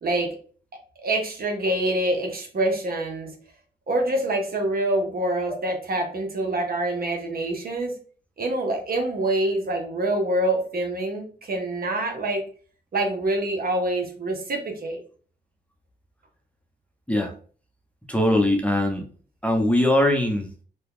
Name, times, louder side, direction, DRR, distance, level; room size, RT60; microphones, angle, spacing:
voice 1, 0.0-0.4 1.0-3.3 3.9-7.9 8.4-12.4 12.9-15.0, right 1 dB, 60° right, 3 dB, 1.0 m, -26 dB
voice 2, 18.1-19.0 19.4-20.5, left 1 dB, 5° left, 2 dB, 0.8 m, -21 dB
2.8 x 2.3 x 3.6 m, 0.42 s
cardioid pair, 65°, 18 cm